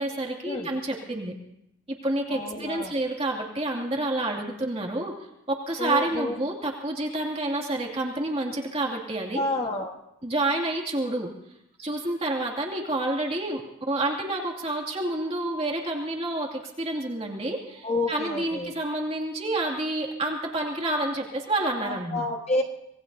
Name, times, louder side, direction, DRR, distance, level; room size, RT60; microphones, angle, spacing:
voice 1, 0.0-1.3 1.9-5.1 5.5-9.4 10.2-11.3 11.8-13.6 13.9-22.3, right 2 dB, 30° right, 0 dB, 2.4 m, -29 dB
voice 2, 2.3-2.9 5.8-6.3 9.3-9.9 17.8-18.7 21.8-22.6, left 2 dB, 30° left, 1 dB, 1.5 m, -29 dB
25.5 x 20.5 x 2.7 m, 0.85 s
head